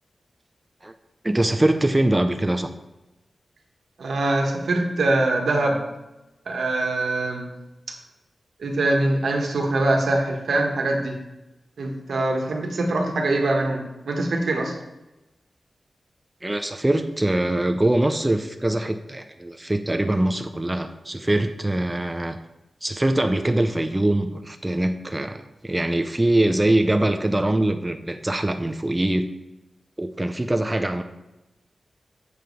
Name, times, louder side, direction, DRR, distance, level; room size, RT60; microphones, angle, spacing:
voice 1, 1.2-2.7 16.4-22.4 22.8-29.3 30.0-31.0, right 1 dB, 20° right, 6 dB, 0.6 m, -23 dB
voice 2, 4.0-5.9 6.5-7.5 8.6-11.2 11.8-14.7, right 2 dB, 90° right, 1 dB, 1.5 m, -23 dB
7.8 x 5.1 x 5.4 m, 0.99 s
wide cardioid pair, 90°, 0 cm